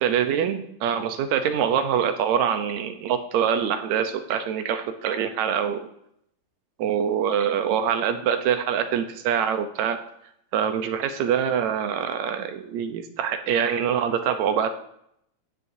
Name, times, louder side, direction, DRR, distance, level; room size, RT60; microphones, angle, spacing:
voice 1, 0.0-5.8 6.8-10.0 10.5-14.7, right 8 dB, 75° right, 8 dB, 2.1 m, -24 dB
14.0 x 9.7 x 2.7 m, 0.75 s
omnidirectional pair, 3.4 m